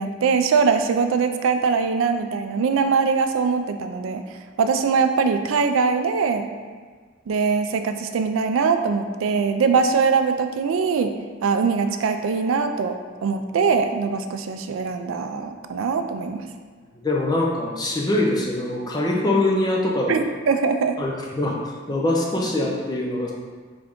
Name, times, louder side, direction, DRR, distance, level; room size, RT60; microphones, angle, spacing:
voice 1, 0.0-4.2 4.6-6.5 7.3-11.1 11.4-12.9 13.2-16.5 20.1-21.0, right 5 dB, 70° right, 7 dB, 0.3 m, -22 dB
voice 2, 17.0-20.1 21.0-21.6 21.9-23.3, left 1 dB, 20° left, -2 dB, 0.5 m, -23 dB
3.8 x 3.4 x 3.5 m, 1.5 s
head